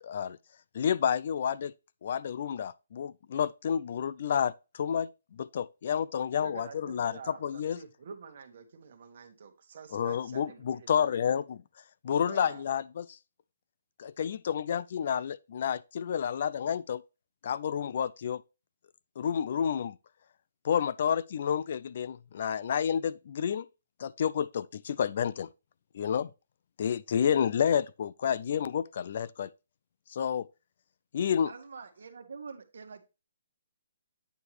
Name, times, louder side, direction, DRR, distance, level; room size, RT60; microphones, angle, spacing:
voice 1, 0.0-0.4 0.7-1.7 2.0-7.8 9.9-11.6 12.0-13.2 14.0-17.0 17.4-18.4 19.2-20.0 20.6-23.7 24.0-25.5 25.9-26.3 26.8-29.5 30.1-30.5 31.1-31.5, left 8 dB, 40° left, 0.3 m, -30 dB
voice 2, 6.4-11.4 12.1-12.6, right 5 dB, 45° right, 1.4 m, -47 dB
voice 3, 31.4-33.0, right 5 dB, 65° right, 1.4 m, -45 dB
8.9 x 4.7 x 3.2 m
hypercardioid pair, 175°, 0 cm